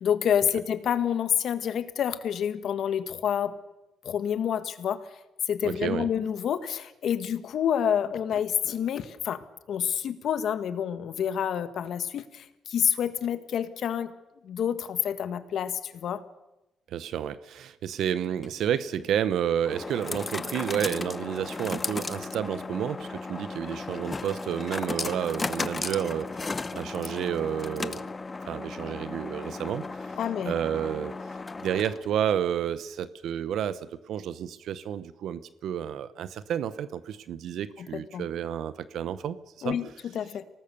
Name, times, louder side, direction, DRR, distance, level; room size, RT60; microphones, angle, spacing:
voice 1, 0.0-3.6 4.0-5.1 5.5-9.4 9.7-14.1 14.4-16.2 30.2-30.5 37.9-38.2 39.6-40.4, left 9 dB, 65° left, 12 dB, 1.5 m, -28 dB
voice 2, 5.6-6.1 16.9-28.1 28.5-30.2 30.5-39.8, right 9 dB, 75° right, 15 dB, 0.8 m, -31 dB
sound 1, 18.2-32.2, left 3 dB, 25° left, 0.9 m, -35 dB
24.0 x 18.5 x 6.8 m, 0.94 s
cardioid pair, 90°, 0 cm